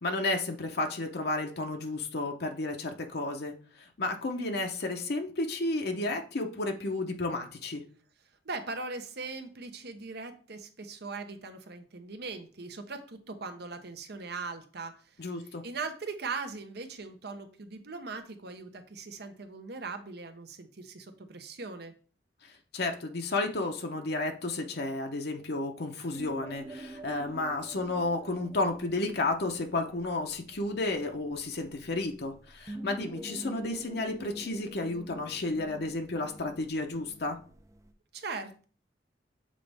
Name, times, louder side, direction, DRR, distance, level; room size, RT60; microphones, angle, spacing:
voice 1, 0.0-7.8 15.2-15.6 22.7-37.4, left 2 dB, 65° left, 4 dB, 0.8 m, -32 dB
voice 2, 8.4-21.9 38.1-38.6, right 4 dB, 65° right, 8 dB, 0.9 m, -40 dB
sound 1, 26.1-37.9, right 1 dB, 20° right, 0.5 m, -46 dB
7.5 x 4.1 x 3.4 m, 0.40 s
head